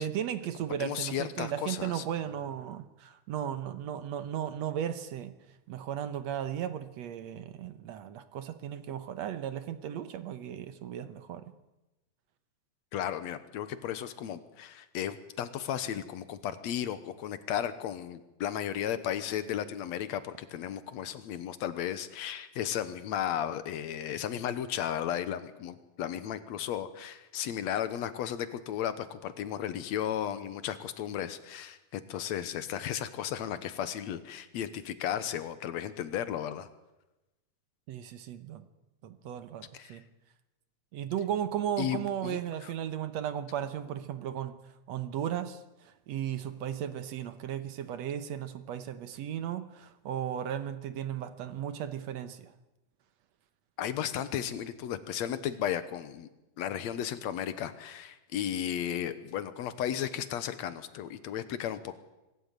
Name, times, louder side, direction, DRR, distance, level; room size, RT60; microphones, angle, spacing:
voice 1, 0.0-5.3 5.7-11.4 37.9-38.7 39.0-40.0 40.9-44.5 44.9-45.6 46.1-52.5, right 10 dB, 65° right, 11 dB, 1.9 m, -35 dB
voice 2, 0.8-2.0 12.9-36.7 39.7-40.0 41.8-42.7 53.8-56.3 56.6-61.9, left 10 dB, 65° left, 12 dB, 2.1 m, -34 dB
24.5 x 13.5 x 9.1 m, 1.0 s
omnidirectional pair, 3.7 m